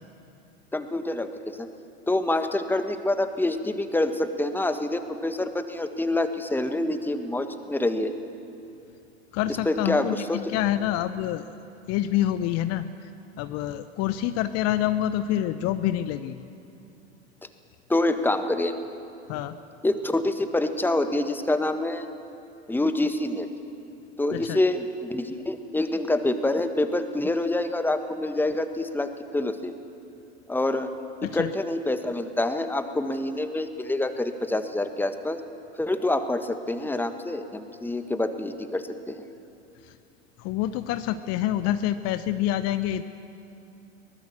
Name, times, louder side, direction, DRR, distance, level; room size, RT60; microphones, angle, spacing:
voice 1, 0.7-1.7 2.1-8.1 9.6-10.6 17.9-18.7 19.8-22.0 22.7-23.5 24.2-29.7 30.5-30.9 31.3-35.4 35.7-39.2, left 2 dB, 5° left, 8 dB, 1.5 m, -26 dB
voice 2, 9.3-11.5 11.9-13.1 13.4-16.5 19.3-19.6 24.3-24.6 31.3-31.5 39.8-39.9 40.4-43.0, left 12 dB, 45° left, 11 dB, 0.9 m, -27 dB
22.5 x 20.0 x 7.3 m, 2.7 s
figure-of-eight pair, 75°, 33 cm